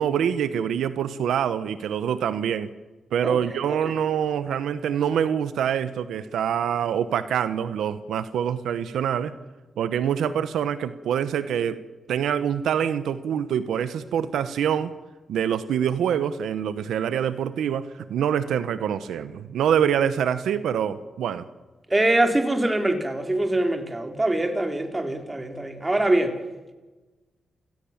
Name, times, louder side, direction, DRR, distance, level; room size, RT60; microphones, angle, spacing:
voice 1, 0.0-2.7 3.1-9.3 9.8-11.8 12.1-14.9 15.3-21.4, right 8 dB, 90° right, 0.9 m, -25 dB
voice 2, 21.9-26.4, right 1 dB, 20° right, 3.7 m, -24 dB
28.0 x 17.0 x 7.3 m
cardioid pair, 70°, 0 cm